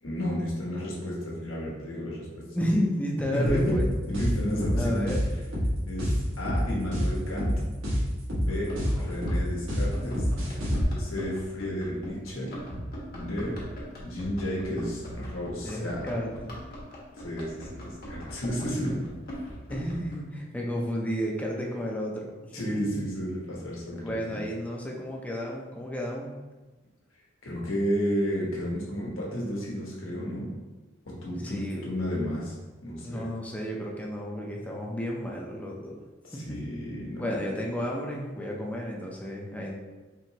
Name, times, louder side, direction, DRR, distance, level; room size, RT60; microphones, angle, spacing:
voice 1, 0.0-2.4 3.3-3.7 4.1-5.3 5.9-7.6 8.4-10.3 10.9-12.5 13.2-13.5 14.0-16.0 17.2-19.0 22.5-24.4 27.4-30.5 31.2-32.5 32.8-33.2 36.2-37.3, equal, 80° left, -4 dB, 1.2 m, -32 dB
voice 2, 2.5-3.9 4.8-5.2 8.9-9.1 15.6-16.6 19.7-22.3 24.0-26.3 31.4-31.9 33.0-36.0 36.3-36.6 37.2-39.7, equal, 5° left, -2 dB, 0.5 m, -32 dB
sound 1, 3.5-10.8, equal, 85° right, 1.4 m, -27 dB
Run, 8.5-20.2, equal, 50° left, 1.1 m, -41 dB
4.5 x 3.0 x 2.8 m, 1.2 s
head